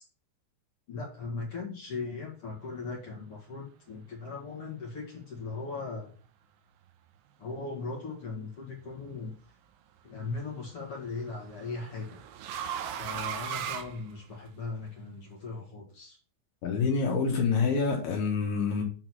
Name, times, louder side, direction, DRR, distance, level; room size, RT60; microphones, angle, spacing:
voice 1, 0.9-6.1 7.4-9.4 10.0-12.2 13.0-16.2, left 3 dB, 50° left, 1.8 m, -38 dB
sound 1, 8.8-9.3 10.7-14.7, right 8 dB, 85° right, 3.4 m, -38 dB
voice 2, 16.6-18.8, left 5 dB, 65° left, 3.0 m, -27 dB
9.1 x 3.9 x 6.2 m
omnidirectional pair, 5.4 m